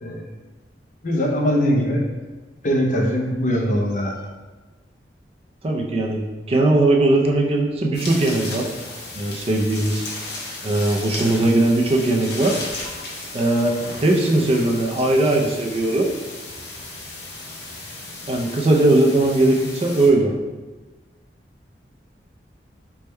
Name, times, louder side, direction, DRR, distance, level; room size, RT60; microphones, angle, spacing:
voice 1, 1.0-2.0 2.6-4.2, equal, 45° left, -1 dB, 0.5 m, -21 dB
voice 2, 5.6-8.6 9.1-10.1 10.6-12.5 13.3-13.7 14.0-16.1 18.3-20.3, right 2 dB, 35° right, 0 dB, 0.4 m, -19 dB
sound 1, 7.9-20.1, left 2 dB, 70° left, 0.8 m, -35 dB
3.4 x 2.1 x 4.2 m, 1.2 s
head